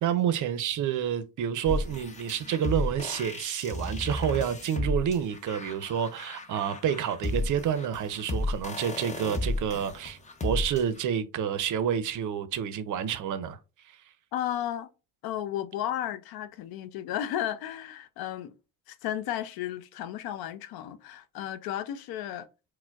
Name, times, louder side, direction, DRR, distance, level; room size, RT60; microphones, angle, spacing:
voice 1, 0.0-13.6 13.9-14.0, right 8 dB, 55° right, 0.5 m, -29 dB
sound 1, 1.7-11.0, left 1 dB, 20° left, 0.5 m, -33 dB
voice 2, 14.3-14.9 15.2-18.5 18.9-22.5, left 11 dB, 70° left, 0.5 m, -34 dB
4.3 x 2.1 x 2.3 m
cardioid pair, 100°, 38 cm